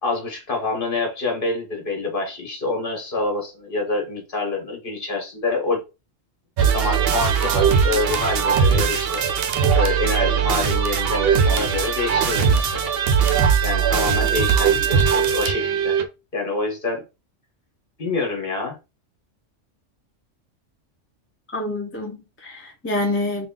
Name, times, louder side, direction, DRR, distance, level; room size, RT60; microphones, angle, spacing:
voice 1, 0.0-5.8 6.7-9.2 9.7-12.9 13.6-16.0 16.3-17.0 18.0-18.8, left 3 dB, 45° left, 1.4 m, -26 dB
sound 1, 6.6-16.1, right 7 dB, 60° right, 0.7 m, -20 dB
voice 2, 21.5-23.5, left 2 dB, 15° left, 0.5 m, -27 dB
3.4 x 2.3 x 3.6 m
omnidirectional pair, 1.3 m